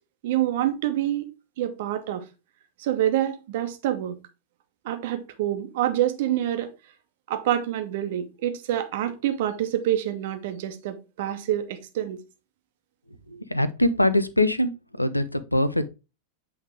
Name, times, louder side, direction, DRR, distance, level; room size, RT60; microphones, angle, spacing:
voice 1, 0.2-1.3 1.6-2.3 2.8-4.2 4.8-6.7 7.3-12.2, right 12 dB, 55° right, 1.0 m, -27 dB
voice 2, 13.3-14.7 15.0-15.9, left 1 dB, 85° left, 0.5 m, -23 dB
8.1 x 3.5 x 3.4 m
figure-of-eight pair, 90°, 0 cm